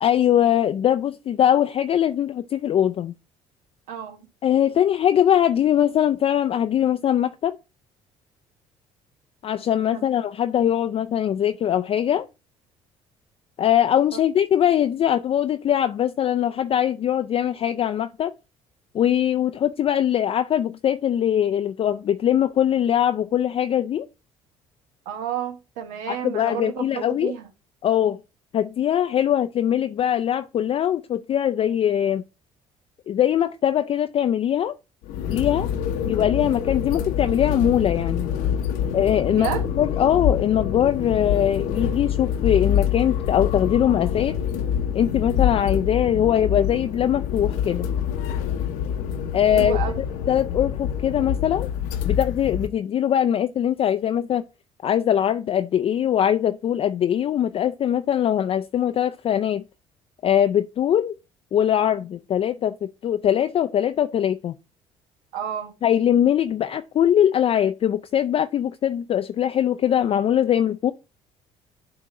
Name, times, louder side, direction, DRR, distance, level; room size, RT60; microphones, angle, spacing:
voice 1, 0.0-3.1 4.4-7.6 9.4-12.3 13.6-18.3 18.9-24.1 26.1-27.3 27.8-28.2 28.5-32.2 33.1-34.7 35.3-35.7 36.1-38.3 38.9-39.5 39.7-44.4 44.9-47.9 49.3-51.7 52.0-54.4 54.8-59.6 60.2-61.1 61.5-64.5 65.8-70.9, left 10 dB, 45° left, 0.4 m, -21 dB
voice 2, 3.9-4.3 9.9-10.0 25.0-27.5 39.2-39.6 49.5-50.0 65.3-65.7, right 9 dB, 75° right, 1.3 m, -31 dB
sound 1, 35.0-52.7, left 8 dB, 80° left, 0.8 m, -26 dB
7.5 x 2.8 x 5.0 m
supercardioid pair, 70°, 14 cm